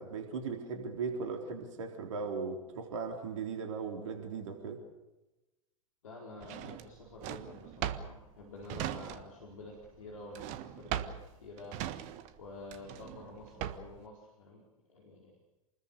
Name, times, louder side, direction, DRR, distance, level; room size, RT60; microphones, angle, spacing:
voice 1, 0.0-4.8, right 5 dB, 60° right, 4 dB, 3.8 m, -38 dB
voice 2, 6.0-11.1 11.4-11.8 12.4-15.4, left 2 dB, 70° left, 0 dB, 4.6 m, -49 dB
Drawer open or close, 6.4-9.5 9.8-14.0, right 11 dB, 45° right, 1.5 m, -39 dB
28.5 x 21.0 x 6.8 m, 1.0 s
figure-of-eight pair, 90°, 18 cm